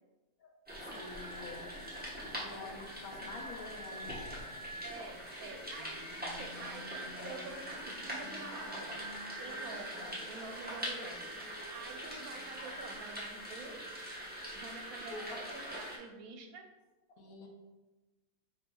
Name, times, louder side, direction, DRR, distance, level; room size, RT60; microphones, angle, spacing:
sound 1, 0.7-16.0, equal, 10° right, 0.7 m, -42 dB
voice 1, 0.9-1.7 2.2-4.3 9.3-9.4 15.1-15.3 17.2-17.5, left 3 dB, 85° left, 0 dB, 1.2 m, -47 dB
voice 2, 4.8-9.0 9.4-13.8 14.5-16.7, right 4 dB, 85° right, 4 dB, 1.0 m, -48 dB
5.2 x 3.0 x 2.2 m, 1.1 s
omnidirectional pair, 1.5 m